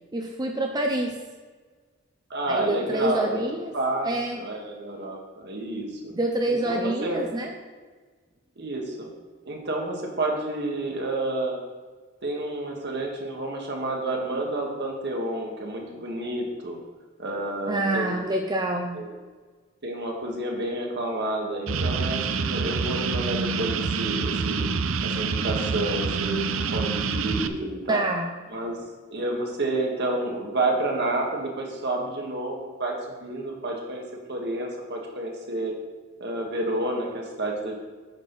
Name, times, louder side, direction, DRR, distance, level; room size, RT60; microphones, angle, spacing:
voice 1, 0.1-1.2 2.5-3.7 4.0-4.4 6.1-7.5 17.7-19.0 27.9-28.3, right 1 dB, 20° right, 2 dB, 0.6 m, -27 dB
voice 2, 2.3-3.4 3.7-4.1 4.4-6.1 6.5-7.2 8.6-9.1 9.5-11.6 12.2-16.8 17.2-18.2 18.9-19.1 19.8-24.7 25.0-28.0 28.5-28.8 29.1-33.0 33.2-34.0 34.3-35.7 36.2-37.8, right 2 dB, 55° right, 0 dB, 1.7 m, -29 dB
sound 1, 21.7-27.5, right 5 dB, 75° right, 0.5 m, -27 dB
9.7 x 6.5 x 4.1 m, 1.4 s
head